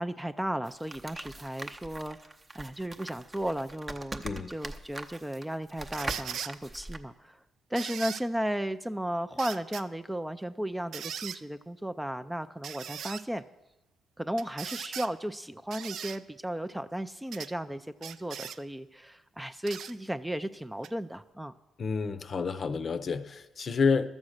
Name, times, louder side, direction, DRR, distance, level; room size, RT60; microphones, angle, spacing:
voice 1, 0.0-7.4 7.7-13.5 14.2-21.5, right 1 dB, 5° right, 11 dB, 0.4 m, -35 dB
sound 1, 0.6-7.0, right 2 dB, 25° right, 0.7 m, -42 dB
sound 2, 5.9-6.5 7.8-8.2 9.4-9.8 10.9-11.4 12.6-13.2 14.4-15.1 15.7-16.2 17.3-17.5 18.0-18.6 19.7-19.9 20.8-20.9, right 8 dB, 65° right, 0.4 m, -39 dB
voice 2, 21.8-24.1, left 5 dB, 45° left, 11 dB, 0.6 m, -29 dB
12.0 x 7.2 x 6.5 m, 1.0 s
cardioid pair, 90°, 0 cm